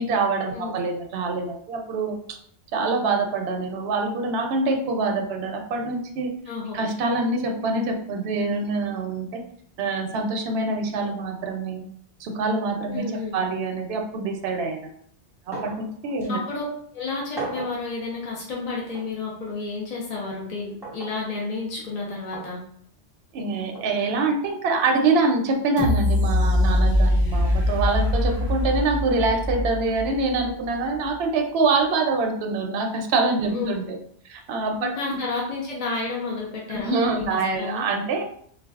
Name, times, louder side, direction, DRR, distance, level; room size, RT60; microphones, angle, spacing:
voice 1, 0.0-2.4 2.7-6.3 6.7-9.4 9.8-11.9 12.2-14.9 15.5-16.4 23.3-34.0 34.2-35.2 36.7-38.2, right 3 dB, 65° right, 3 dB, 0.8 m, -25 dB
voice 2, 6.5-6.8 12.9-13.4 16.3-16.7 16.9-22.6 33.5-33.8 34.8-37.9, left 3 dB, 40° left, -4 dB, 0.8 m, -31 dB
sound 1, 15.5-15.9 16.2-16.3 17.4-17.8 18.9-19.1 20.8-21.2 22.3-22.5 23.7-23.9, right 2 dB, ahead, 0.9 m, -35 dB
sound 2, 25.8-30.7 31.1-31.2, left 1 dB, 15° left, 1.4 m, -22 dB
3.9 x 2.3 x 2.3 m, 0.62 s
omnidirectional pair, 1.2 m